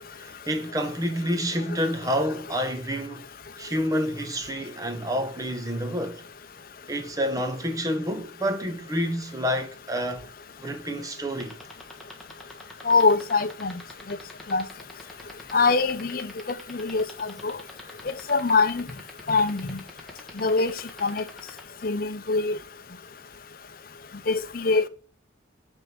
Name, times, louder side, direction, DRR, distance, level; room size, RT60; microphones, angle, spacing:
voice 1, 0.1-3.3 3.6-6.2 6.9-10.3 10.6-11.6, equal, 20° right, 1.0 m, -28 dB
sound 1, 11.3-21.6, left 1 dB, ahead, 1.3 m, -43 dB
voice 2, 12.8-13.8 14.1-14.2 14.5-14.7 15.5-16.3 16.7-17.6 18.3-18.9 19.3-19.8 20.4-20.7 21.0-21.2 21.8-22.6 24.3-24.9, left 4 dB, 50° left, 0.6 m, -23 dB
8.8 x 3.6 x 5.9 m
head